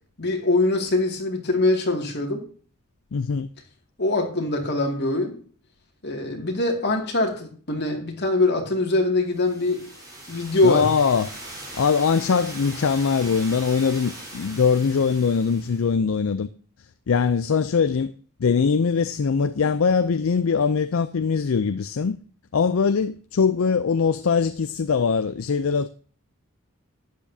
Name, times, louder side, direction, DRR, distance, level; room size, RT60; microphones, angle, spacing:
voice 1, 0.2-2.4 4.0-5.4 6.0-9.8 10.3-10.9 19.5-19.6, left 2 dB, 50° left, 2.2 m, -23 dB
voice 2, 3.1-3.5 10.6-11.3 11.8-16.5 17.1-18.1 18.4-22.2 22.5-25.9, left 5 dB, 65° left, 0.4 m, -22 dB
sound 1, 9.3-15.9, right 1 dB, 20° right, 4.1 m, -40 dB
12.0 x 9.2 x 2.7 m
head